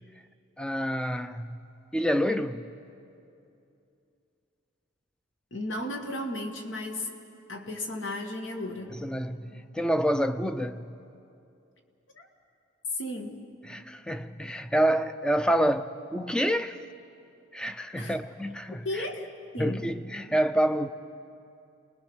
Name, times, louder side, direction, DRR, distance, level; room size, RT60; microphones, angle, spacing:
voice 1, 0.6-1.7 1.9-2.7 8.9-10.9 13.6-16.8 17.5-19.1 19.6-20.9, equal, 5° left, 0.5 m, -28 dB
voice 2, 5.5-7.1 7.5-8.9 12.1-12.3 13.0-13.4 17.9-18.2 18.8-19.9, left 1 dB, 65° left, 1.8 m, -34 dB
28.0 x 20.5 x 6.3 m
head